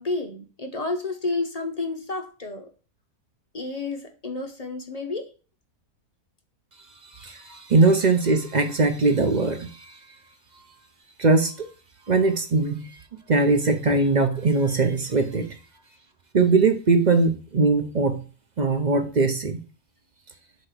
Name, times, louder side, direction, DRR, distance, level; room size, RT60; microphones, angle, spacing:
voice 1, 0.0-2.7 3.5-5.3, left 3 dB, 35° left, 4 dB, 0.7 m, -30 dB
voice 2, 7.2-9.7 11.2-11.7 12.1-12.8 13.3-15.5 16.3-18.2 18.6-19.6, right 3 dB, 40° right, 6 dB, 0.7 m, -21 dB
7.9 x 3.1 x 6.0 m, 0.36 s
omnidirectional pair, 1.6 m